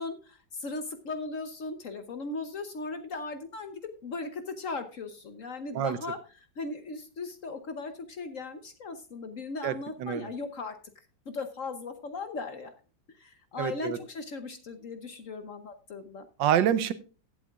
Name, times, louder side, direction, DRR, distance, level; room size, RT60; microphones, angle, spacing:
voice 1, 0.0-10.8 11.3-12.7 13.1-16.2, left 3 dB, 55° left, 9 dB, 1.0 m, -38 dB
voice 2, 13.6-14.0 16.4-16.9, right 10 dB, 75° right, 14 dB, 1.4 m, -26 dB
16.0 x 8.4 x 2.4 m, 0.36 s
omnidirectional pair, 2.0 m